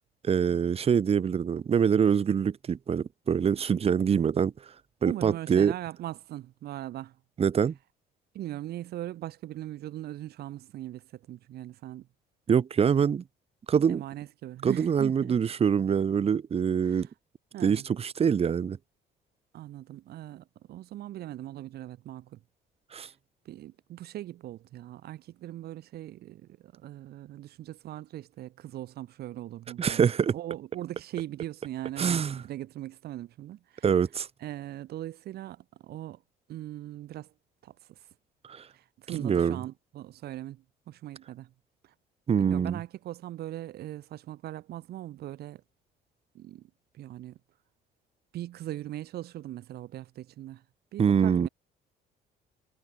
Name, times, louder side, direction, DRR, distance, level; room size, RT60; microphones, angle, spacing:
voice 1, 0.2-4.5 5.0-5.7 7.4-7.7 12.5-13.2 13.7-14.0 14.6-17.1 17.6-18.8 22.9-23.1 29.8-30.3 32.0-32.4 33.8-34.3 38.5-38.7 39.2-39.6 42.3-42.8 51.0-51.5, right 7 dB, 35° right, 1.3 m, -24 dB
voice 2, 5.0-7.2 8.3-12.1 13.9-15.4 16.8-17.1 17.5-17.9 19.5-22.4 23.0-23.1 23.4-33.9 34.4-36.2 36.5-37.3 37.6-38.0 38.7-41.5 41.8-41.9 42.4-45.6 46.3-47.4 48.3-50.6 50.9-51.5, right 14 dB, 70° right, 4.9 m, -40 dB
cardioid pair, 110°, 17 cm